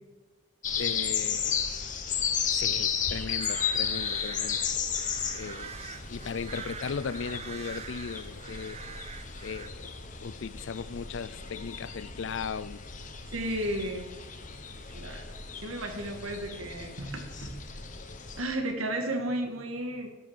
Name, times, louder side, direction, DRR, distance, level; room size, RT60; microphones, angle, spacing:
sound 1, 0.6-18.4, left 7 dB, 40° left, 1.0 m, -34 dB
voice 1, 0.8-1.6 2.6-4.7 5.0-5.7 6.1-8.8 9.4-9.9 10.2-12.8, left 6 dB, 60° left, 0.4 m, -37 dB
sound 2, 3.3-9.7, right 7 dB, 30° right, 0.4 m, -44 dB
voice 2, 13.3-14.1 14.9-15.4 15.6-17.5 18.4-20.1, right 1 dB, 80° right, 1.9 m, -33 dB
12.5 x 6.3 x 7.2 m
head